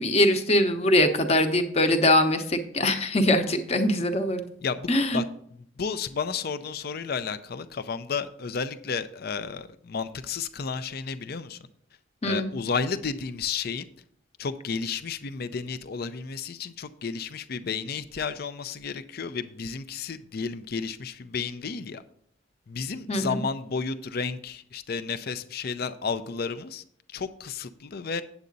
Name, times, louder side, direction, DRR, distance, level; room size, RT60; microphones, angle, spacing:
voice 1, 0.0-4.5 4.9-5.2 12.2-12.5 23.1-23.4, left 1 dB, 35° left, 6 dB, 0.9 m, -22 dB
voice 2, 4.6-5.2 5.5-11.6 12.2-13.9 14.4-22.0 22.7-26.8 27.1-28.2, left 5 dB, 50° left, 11 dB, 0.5 m, -32 dB
8.4 x 8.0 x 4.0 m, 0.64 s
head